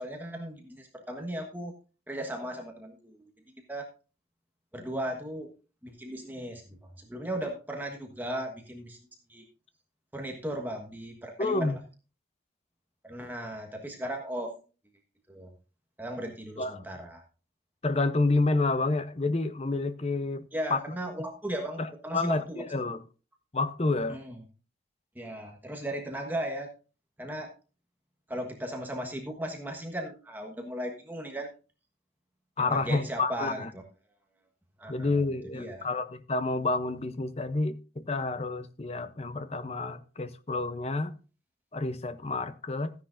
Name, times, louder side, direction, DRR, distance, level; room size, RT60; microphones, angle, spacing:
voice 1, 0.0-1.7 2.1-3.3 3.7-3.9 4.7-5.5 5.8-9.0 9.3-9.4 10.1-11.8 13.0-14.5 15.3-15.5 16.0-17.2 20.5-22.7 24.1-24.4 25.1-26.7 27.2-27.5 28.3-31.5 32.6-33.8 34.8-35.9, right 1 dB, 10° right, 1.3 m, -36 dB
voice 2, 11.4-11.8 16.6-16.8 17.8-20.4 20.7-20.8 21.8-23.0 23.5-24.2 32.6-33.7 34.9-41.2 41.7-42.9, left 3 dB, 35° left, 0.7 m, -29 dB
14.5 x 10.0 x 2.6 m
head